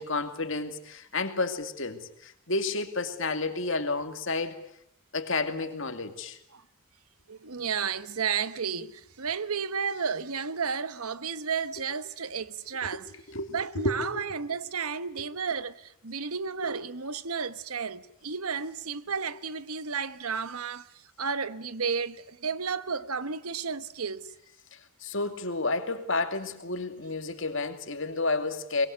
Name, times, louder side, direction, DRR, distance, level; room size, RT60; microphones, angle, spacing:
voice 1, 0.0-4.6 5.1-6.4 12.9-13.0 13.3-14.2 15.2-15.3 24.7-28.9, left 3 dB, 60° left, 2.4 m, -31 dB
voice 2, 7.3-13.1 13.5-24.3, right 6 dB, 90° right, 1.2 m, -32 dB
23.5 x 22.0 x 9.6 m
head